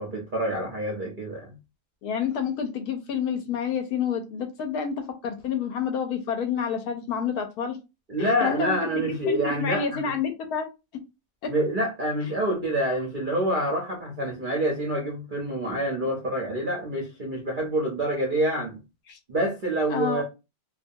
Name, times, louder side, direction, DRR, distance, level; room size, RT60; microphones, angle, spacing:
voice 1, 0.0-1.5 8.1-10.1 11.5-18.8 19.3-20.2, right 1 dB, 50° right, 0.6 m, -27 dB
voice 2, 2.0-7.8 8.2-10.7 19.1-19.2 19.9-20.2, left 7 dB, 70° left, 1.0 m, -29 dB
2.7 x 2.3 x 2.6 m
omnidirectional pair, 1.8 m